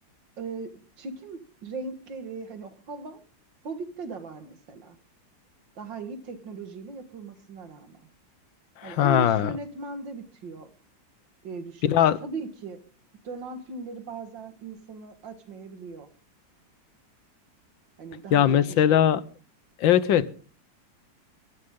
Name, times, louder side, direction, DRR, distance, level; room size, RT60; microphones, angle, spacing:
voice 1, 0.4-0.7 1.0-3.2 3.6-5.0 5.8-8.1 8.8-10.7 11.4-12.8 13.2-16.1 18.0-19.2, right 4 dB, 75° right, 8 dB, 2.5 m, -38 dB
voice 2, 8.8-9.5 11.8-12.2 18.3-19.2 19.8-20.3, left 10 dB, 90° left, 16 dB, 1.7 m, -20 dB
23.0 x 13.0 x 3.8 m, 0.40 s
omnidirectional pair, 2.0 m